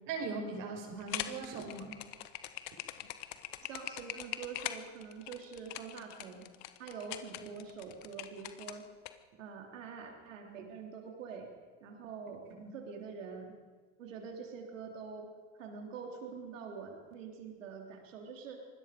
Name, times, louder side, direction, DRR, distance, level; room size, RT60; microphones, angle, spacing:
voice 1, 0.0-2.0 12.6-12.7, right 4 dB, 60° right, 3 dB, 5.7 m, -39 dB
sound 1, 1.0-9.1, left 14 dB, 70° left, 1.4 m, -42 dB
voice 2, 3.6-6.5 6.8-8.9 9.4-11.5 11.8-12.5 12.7-13.5 14.0-15.3 15.6-18.6, right 5 dB, 80° right, 2 dB, 3.5 m, -45 dB
25.5 x 20.5 x 5.2 m, 1.5 s
hypercardioid pair, 80°, 38 cm